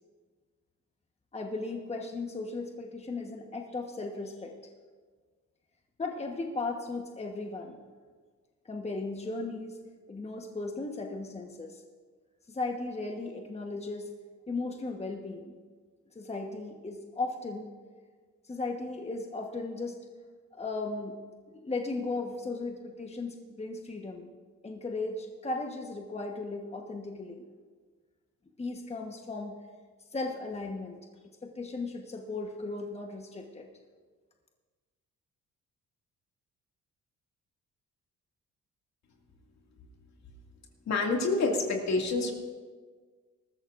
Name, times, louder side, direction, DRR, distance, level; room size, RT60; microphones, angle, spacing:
voice 1, 1.3-4.5 6.0-7.8 8.6-9.8 10.1-11.8 12.5-14.1 14.5-15.5 16.1-17.7 18.4-20.0 20.5-21.2 21.5-24.3 24.6-27.5 28.6-29.6 30.1-31.0 31.2-33.7, left 3 dB, 20° left, 2 dB, 1.3 m, -36 dB
voice 2, 40.9-42.3, left 3 dB, 65° left, 1 dB, 2.4 m, -27 dB
20.5 x 13.5 x 2.6 m, 1.5 s
cardioid pair, 90°, 30 cm